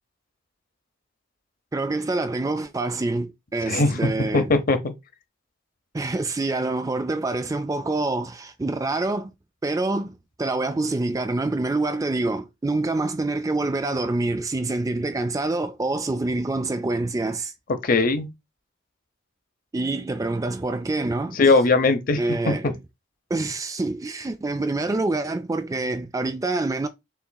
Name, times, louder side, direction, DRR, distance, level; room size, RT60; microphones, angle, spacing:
voice 1, 1.7-4.5 5.9-9.3 9.6-17.5 19.7-21.4 22.2-22.8 23.3-26.9, right 2 dB, 15° right, 0.3 m, -26 dB
voice 2, 3.7-4.8 17.8-18.3 21.3-22.2 22.5-22.7, left 3 dB, 45° left, 0.7 m, -20 dB
5.8 x 3.7 x 2.2 m
head